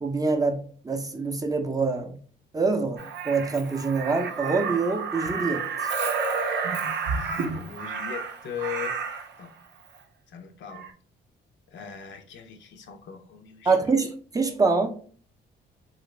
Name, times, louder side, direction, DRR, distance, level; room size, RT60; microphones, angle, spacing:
voice 1, 0.0-2.2 2.5-5.9 13.7-14.9, right 4 dB, 20° right, 0.5 m, -25 dB
Crow, 3.0-9.3 10.7-10.9, right 5 dB, 65° right, 0.6 m, -30 dB
voice 2, 7.1-9.0 9.4-9.5 10.3-10.9 11.7-14.0, left 8 dB, 65° left, 0.6 m, -39 dB
2.8 x 2.5 x 3.1 m
cardioid pair, 90°, 20 cm